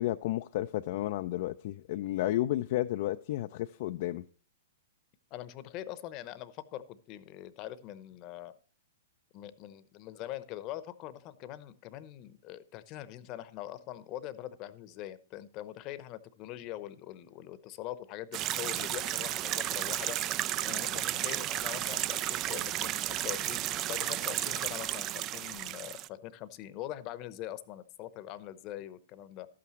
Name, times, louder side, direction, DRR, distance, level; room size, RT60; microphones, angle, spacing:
voice 1, 0.0-4.2, left 14 dB, 55° left, 0.4 m, -32 dB
voice 2, 5.3-8.5 9.3-29.5, left 13 dB, 35° left, 0.8 m, -43 dB
sound 1, 18.3-26.1, right 13 dB, 35° right, 0.3 m, -33 dB
12.5 x 8.6 x 3.0 m
hypercardioid pair, 115°, 0 cm